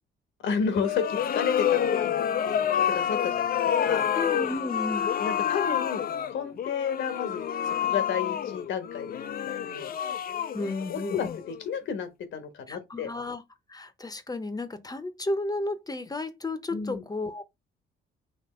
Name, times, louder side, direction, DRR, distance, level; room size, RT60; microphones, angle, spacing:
voice 1, 0.4-4.1 5.2-9.9 10.9-11.3 11.6-13.1 16.7-17.0, left 6 dB, 75° left, 1.3 m, -32 dB
sound 1, 0.7-11.7, left 9 dB, 50° left, 0.5 m, -28 dB
voice 2, 4.1-5.1 10.5-11.4 12.7-13.4 13.7-17.4, left 2 dB, 20° left, 0.8 m, -33 dB
4.2 x 2.9 x 4.2 m
cardioid pair, 90°, 20 cm